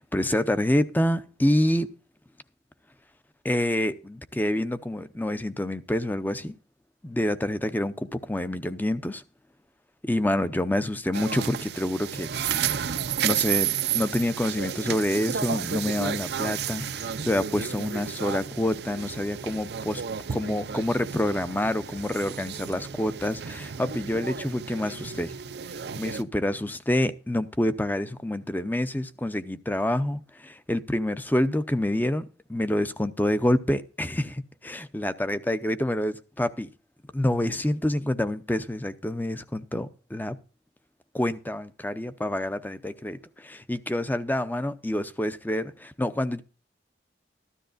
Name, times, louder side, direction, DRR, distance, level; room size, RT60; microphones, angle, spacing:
voice 1, 0.0-1.9 3.4-6.5 7.0-9.2 10.0-12.8 13.2-20.0 20.3-25.3 26.0-36.7 37.1-40.4 41.1-46.4, left 1 dB, 10° left, 0.6 m, -27 dB
sound 1, 11.1-26.2, right 8 dB, 60° right, 0.5 m, -32 dB
14.0 x 13.0 x 2.5 m
head